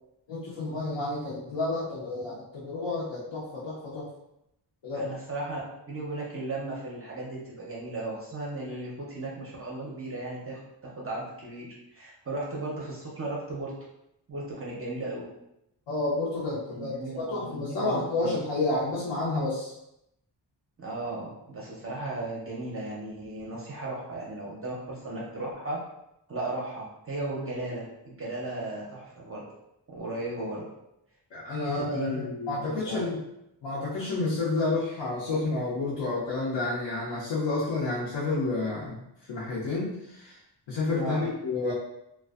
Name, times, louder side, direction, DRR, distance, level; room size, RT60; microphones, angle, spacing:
voice 1, 0.3-4.1 4.8-5.1 15.9-19.7 31.3-33.2 33.6-39.0 39.3-40.4 40.7-41.7, left 2 dB, 90° left, -7 dB, 0.8 m, -30 dB
voice 2, 4.9-5.6 5.9-10.6 11.0-11.7 11.9-13.7 14.3-15.2 16.7-18.3 20.8-25.8 26.3-29.4 29.9-30.7 31.6-33.1 41.0-41.2, right 2 dB, 35° right, -4 dB, 0.4 m, -36 dB
2.5 x 2.2 x 2.3 m, 0.82 s
wide cardioid pair, 175°, 43 cm